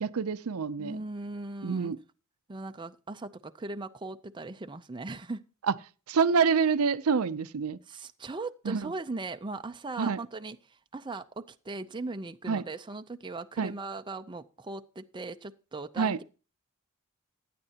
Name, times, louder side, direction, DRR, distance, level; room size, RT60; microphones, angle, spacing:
voice 1, 0.0-1.0 1.6-2.0 5.7-5.8 6.1-7.8 8.6-8.9 10.0-10.2 12.5-12.6 13.6-13.7 16.0-16.2, right 5 dB, 80° right, 0.5 m, -27 dB
voice 2, 0.8-1.9 2.5-5.4 7.9-10.6 10.9-16.2, right 3 dB, 20° right, 0.5 m, -39 dB
15.5 x 10.0 x 2.9 m
head